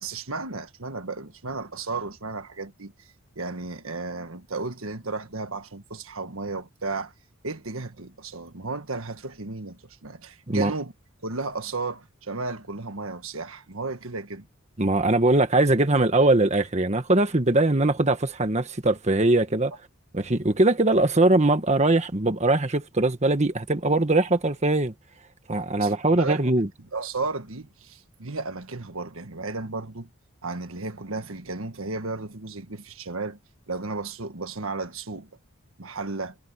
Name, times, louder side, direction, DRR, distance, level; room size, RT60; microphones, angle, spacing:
voice 1, 0.0-2.9 3.4-7.1 7.4-10.9 11.2-14.5 25.8-26.4 26.9-30.1 30.4-33.4 33.7-35.3 35.8-36.4, right 3 dB, 65° right, 1.6 m, -34 dB
voice 2, 14.8-19.7 20.1-24.9 25.5-26.7, right 2 dB, 30° right, 1.4 m, -21 dB
head